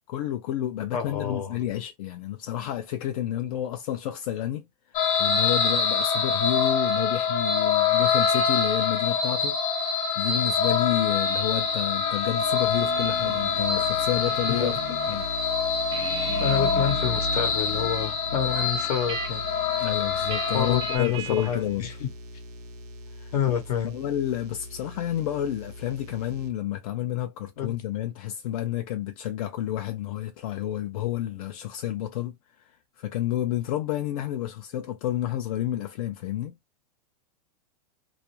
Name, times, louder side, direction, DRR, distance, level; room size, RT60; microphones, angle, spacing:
voice 1, 0.1-9.6 10.2-15.3 19.8-22.0 23.1-23.5 23.9-36.5, left 12 dB, 60° left, 0.4 m, -30 dB
voice 2, 0.9-1.6 14.5-14.8 16.4-19.4 20.5-22.1 23.3-24.0 27.6-27.7, left 8 dB, 80° left, 0.8 m, -28 dB
sound 1, 4.9-21.0, left 6 dB, 40° left, 0.8 m, -25 dB
sound 2, 10.7-26.5, left 1 dB, 75° right, 0.7 m, -39 dB
sound 3, 12.7-15.2 15.5-21.7, right 7 dB, 25° right, 0.4 m, -41 dB
2.4 x 2.0 x 2.9 m
supercardioid pair, 140°, 20 cm